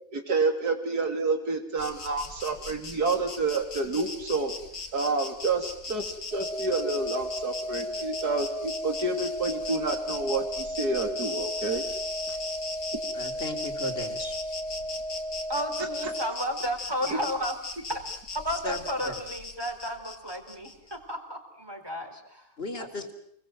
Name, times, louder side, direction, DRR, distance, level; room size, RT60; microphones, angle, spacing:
voice 1, 0.1-4.5 4.9-11.8 12.3-12.4 16.0-16.1 17.1-17.2, right 3 dB, 90° right, 6 dB, 3.5 m, -29 dB
Insect, 1.8-21.0, left 4 dB, 90° left, 2.9 m, -39 dB
sound 1, 6.3-16.3, equal, 5° left, 2.0 m, -35 dB
voice 2, 13.1-14.4 18.6-19.1 22.6-23.1, left 1 dB, 40° left, 4 dB, 3.4 m, -35 dB
voice 3, 15.5-17.6 17.9-18.0 18.3-22.5 22.8-22.9, equal, 15° right, 4 dB, 4.2 m, -33 dB
28.0 x 21.0 x 7.7 m, 0.70 s
omnidirectional pair, 1.6 m